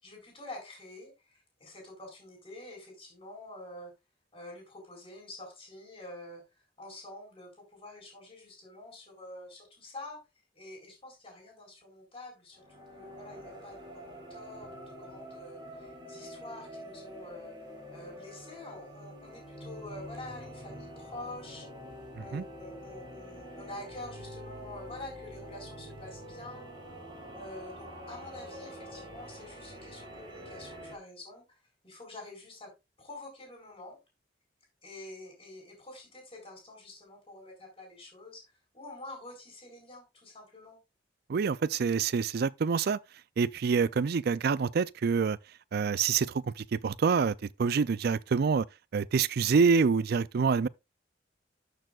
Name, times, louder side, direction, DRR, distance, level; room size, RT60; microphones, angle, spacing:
voice 1, 0.0-3.9 4.3-6.4 6.8-10.2 10.5-12.6 13.0-17.5 17.9-21.7 22.1-26.7 27.3-31.6 31.8-32.7 33.0-34.0 34.8-40.8, left 2 dB, 30° left, 4.6 m, -47 dB
sound 1, 12.5-31.0, equal, 25° right, 3.8 m, -46 dB
voice 2, 41.3-43.0 43.4-45.4 45.7-48.7 48.9-50.7, right 5 dB, 60° right, 0.4 m, -26 dB
12.5 x 6.7 x 2.4 m
head